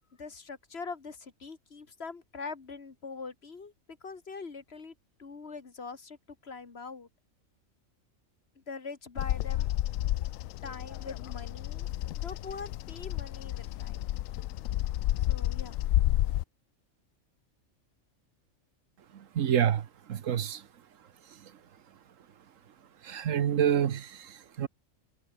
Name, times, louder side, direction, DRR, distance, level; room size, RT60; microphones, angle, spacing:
voice 1, 0.2-3.7 4.0-4.9 5.2-7.1 8.6-9.7 10.6-11.9 12.1-14.2 15.2-16.0, left 4 dB, 50° left, 2.1 m, -43 dB
Bird vocalization bird call bird song, 9.2-16.4, left 14 dB, 80° left, 1.0 m, -31 dB
voice 2, 19.3-20.6 23.0-24.7, right 9 dB, 75° right, 1.3 m, -28 dB
omnidirectional pair, 1.4 m